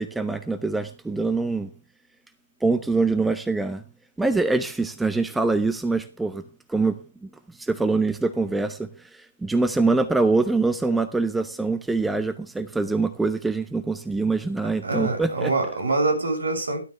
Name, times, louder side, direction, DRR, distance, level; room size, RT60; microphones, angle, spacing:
voice 1, 0.0-1.7 2.6-3.8 4.2-6.4 6.7-15.5, right 3 dB, 5° right, 0.8 m, -24 dB
voice 2, 14.8-16.8, right 3 dB, 70° right, 7.2 m, -25 dB
16.0 x 12.0 x 3.4 m
figure-of-eight pair, 135°, 0 cm